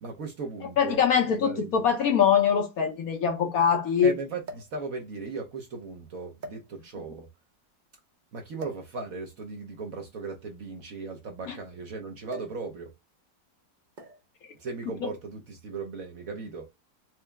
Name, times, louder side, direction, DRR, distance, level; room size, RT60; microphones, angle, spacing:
voice 1, 0.0-1.7 4.0-7.3 8.3-12.9 14.5-16.7, right 4 dB, 60° right, 1.0 m, -37 dB
sound 1, 0.7-0.8 1.9-2.0 2.2-2.3 4.4-4.8 5.7-5.8 6.4-7.1 8.6-8.9 10.0-11.7 12.3-12.7 12.9-13.2 14.0-14.3 15.3-15.6, right 1 dB, 75° right, 0.4 m, -44 dB
voice 2, 0.8-4.1, left 7 dB, 60° left, 1.1 m, -23 dB
4.5 x 2.0 x 3.3 m
omnidirectional pair, 2.0 m